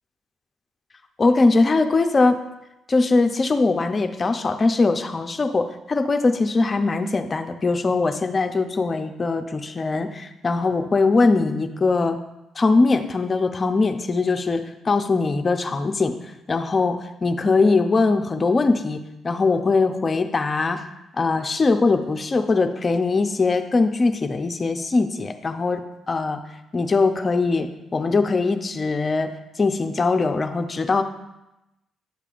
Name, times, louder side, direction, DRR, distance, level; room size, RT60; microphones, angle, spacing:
voice 1, 1.2-2.4 2.9-12.2 12.6-16.1 16.5-20.8 21.2-26.4 26.7-29.3 29.6-31.0, left 3 dB, 30° left, 6 dB, 0.6 m, -21 dB
9.3 x 6.7 x 2.5 m, 0.94 s
cardioid pair, 90°, 0 cm